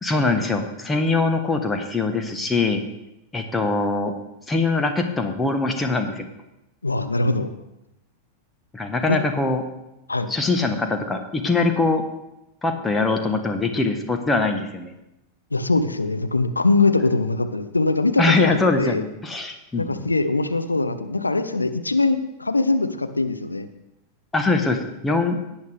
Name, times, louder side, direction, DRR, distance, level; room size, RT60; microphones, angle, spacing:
voice 1, 0.0-2.8 3.3-4.1 4.5-6.3 8.7-9.6 10.3-12.1 12.6-14.9 18.2-20.0 24.3-25.4, left 3 dB, 15° left, 5 dB, 1.2 m, -22 dB
voice 2, 6.8-7.5 9.1-9.2 10.1-10.3 15.5-19.0 19.8-23.7, left 3 dB, 80° left, 9 dB, 0.7 m, -22 dB
17.5 x 8.4 x 3.4 m, 0.91 s
figure-of-eight pair, 90°, 0 cm